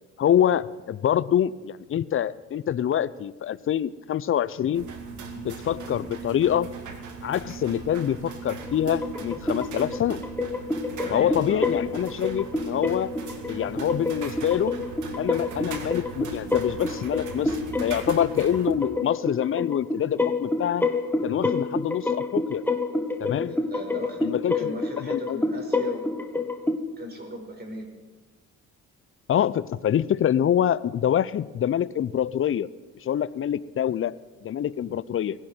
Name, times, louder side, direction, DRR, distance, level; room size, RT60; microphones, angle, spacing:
voice 1, 0.2-4.9 5.4-6.7 7.2-10.2 11.1-13.1 13.5-14.8 15.2-20.9 21.2-22.6 23.2-23.6 24.2-25.4 29.3-32.7 33.0-34.1 34.4-35.3, left 10 dB, 45° left, 17 dB, 0.6 m, -25 dB
sound 1, 4.7-18.7, right 5 dB, 75° right, 2.1 m, -39 dB
sound 2, 8.6-26.8, left 2 dB, 5° left, 1.1 m, -29 dB
voice 2, 11.0-11.6 23.4-26.5 26.8-27.9, right 1 dB, 35° right, 2 dB, 5.0 m, -38 dB
19.0 x 15.5 x 4.5 m, 1.2 s
cardioid pair, 90°, 30 cm